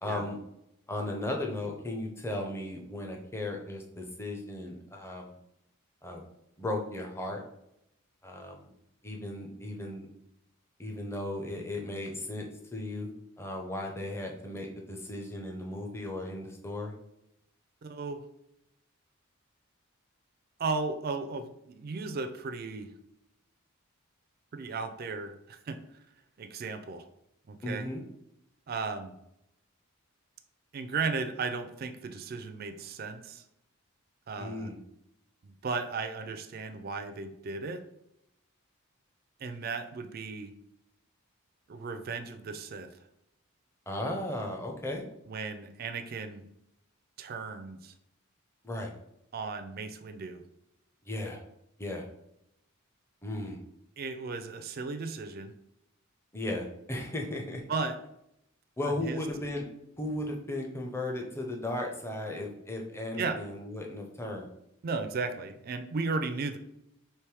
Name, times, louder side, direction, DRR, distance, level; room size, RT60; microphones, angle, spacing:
voice 1, 0.0-0.4 0.9-5.3 6.0-6.2 6.6-7.4 8.2-8.7 9.0-10.1 10.8-12.4 12.7-16.9 27.6-28.0 34.4-34.8 43.9-45.1 48.6-48.9 51.0-51.4 51.8-52.1 53.2-53.6 56.3-57.6 58.8-59.6 60.0-64.5, left 1 dB, 10° left, 1 dB, 0.6 m, -36 dB
voice 2, 17.8-18.2 20.6-22.9 24.5-25.8 26.4-27.1 27.5-27.9 28.7-29.2 30.7-33.4 34.3-34.7 35.4-37.8 39.4-40.5 41.7-42.9 45.3-46.4 47.2-47.9 49.3-50.4 54.0-55.5 57.7-58.0 58.8-59.2 63.2-63.4 64.8-66.6, right 4 dB, 45° right, 8 dB, 0.4 m, -35 dB
3.4 x 3.0 x 4.6 m, 0.81 s
head